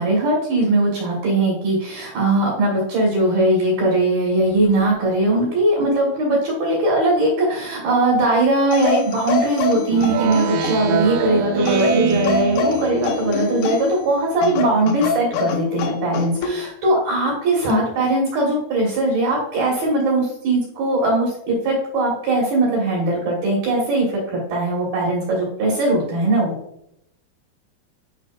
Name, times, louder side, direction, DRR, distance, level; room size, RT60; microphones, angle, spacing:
voice 1, 0.0-24.0 24.3-26.6, right 2 dB, 60° right, -3 dB, 2.8 m, -20 dB
sound 1, 8.7-11.0 11.7-14.0 14.4-16.6 17.7-18.0, left 6 dB, 85° left, 2.3 m, -25 dB
Speech synthesizer, 9.9-13.4, right 9 dB, 80° right, 3.0 m, -24 dB
11.5 x 5.3 x 2.4 m, 0.76 s
omnidirectional pair, 5.7 m